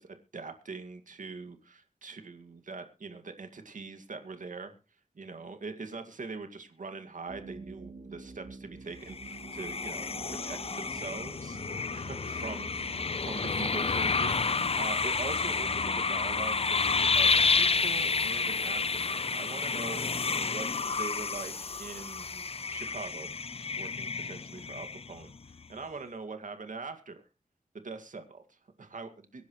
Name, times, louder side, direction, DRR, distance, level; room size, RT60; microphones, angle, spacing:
voice 1, 0.0-4.7 5.2-10.1 10.4-21.5 21.8-22.4 22.7-23.3 23.8-25.3 25.7-27.2 27.7-29.5, right 4 dB, 75° right, 7 dB, 2.1 m, -43 dB
sound 1, 7.3-21.6, right 3 dB, 50° right, 3.7 m, -49 dB
sound 2, 9.1-25.4, left 4 dB, 50° left, 0.6 m, -30 dB
24.0 x 10.5 x 3.1 m, 0.32 s
wide cardioid pair, 70°, 14 cm